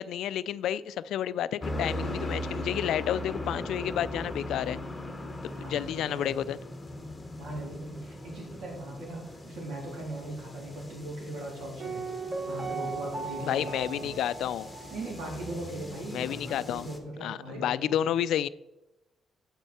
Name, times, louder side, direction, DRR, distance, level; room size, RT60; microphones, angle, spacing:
voice 1, 0.0-4.8 5.4-6.6 13.4-14.7 16.1-16.9 17.2-18.5, left 10 dB, 80° left, 0.3 m, -30 dB
sound 1, 1.6-17.0, left 1 dB, 10° left, 0.9 m, -39 dB
voice 2, 5.6-6.3 7.4-14.1 14.9-18.1, right 1 dB, 90° right, 3.3 m, -39 dB
Piano, 11.8-15.6 15.8-15.9, right 4 dB, 25° right, 1.2 m, -38 dB
9.0 x 7.2 x 4.2 m
cardioid pair, 175°, 0 cm